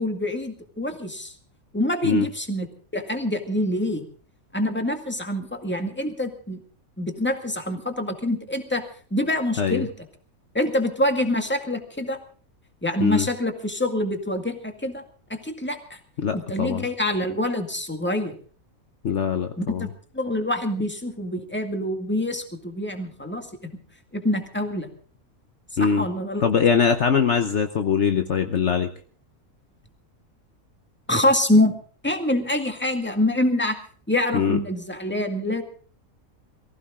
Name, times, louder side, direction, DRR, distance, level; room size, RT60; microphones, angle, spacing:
voice 1, 0.0-1.3 1.7-2.7 2.9-4.1 4.5-6.6 7.0-8.9 9.1-10.1 10.5-12.2 12.8-15.0 15.3-16.0 16.3-18.4 19.6-19.9 20.1-23.7 24.1-24.9 25.8-26.5 31.1-31.8 32.0-33.8 34.1-35.6, left 1 dB, 10° left, 5 dB, 2.0 m, -25 dB
voice 2, 16.2-16.8 19.0-19.9 25.8-26.0 26.4-28.9 34.3-34.6, left 6 dB, 55° left, 7 dB, 1.2 m, -22 dB
23.5 x 15.5 x 3.7 m, 0.43 s
omnidirectional pair, 1.5 m